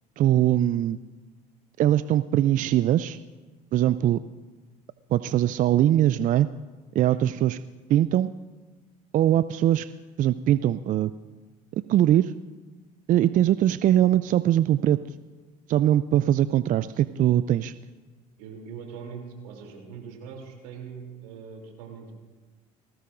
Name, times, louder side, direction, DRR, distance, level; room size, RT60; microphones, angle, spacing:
voice 1, 0.2-1.0 1.8-3.2 3.7-4.2 5.1-6.5 7.0-7.6 7.9-8.3 9.1-9.9 10.2-11.1 11.9-12.3 13.1-15.0 15.7-17.7, right 12 dB, 45° right, 15 dB, 0.4 m, -21 dB
voice 2, 18.4-22.1, right 6 dB, 80° right, 1 dB, 3.0 m, -41 dB
19.5 x 17.0 x 2.5 m, 1.3 s
hypercardioid pair, 65°, 20 cm